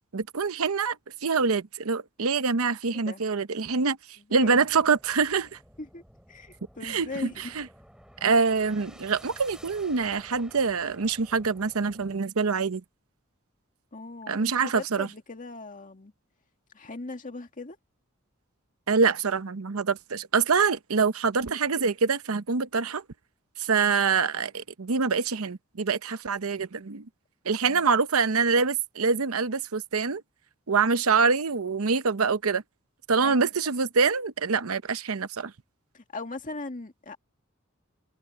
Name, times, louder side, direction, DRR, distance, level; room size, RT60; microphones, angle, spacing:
voice 1, 0.1-1.0 1.2-4.0 4.3-5.6 6.8-7.7 8.2-12.8 14.3-15.1 18.9-23.0 23.6-27.0 27.4-30.2 30.7-32.6 33.1-35.5, right 5 dB, 80° right, 0.9 m, -25 dB
voice 2, 4.3-4.7 5.8-6.0 6.3-7.5 13.9-16.1 16.7-17.8 27.7-27.8 33.2-33.4 35.9-37.2, left 3 dB, 40° left, 2.0 m, -39 dB
sound 1, 4.3-12.2, equal, 5° right, 8.0 m, -52 dB
head